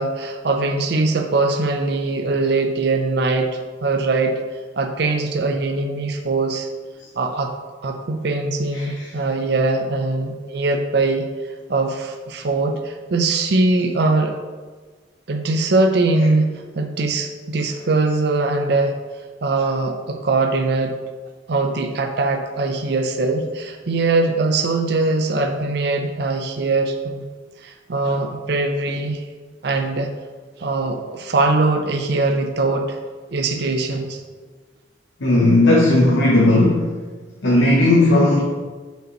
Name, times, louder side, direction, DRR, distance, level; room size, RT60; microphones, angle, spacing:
voice 1, 0.0-4.3 4.8-6.7 7.2-7.5 7.8-11.3 11.7-14.4 15.3-18.9 19.4-20.9 21.5-27.2 27.6-29.2 29.6-30.1 30.6-33.0 33.3-34.2, right 3 dB, 60° right, 3 dB, 0.5 m, -21 dB
voice 2, 35.2-36.9 37.4-38.4, left 2 dB, 80° left, -3 dB, 0.9 m, -15 dB
6.7 x 5.2 x 3.0 m, 1.4 s
head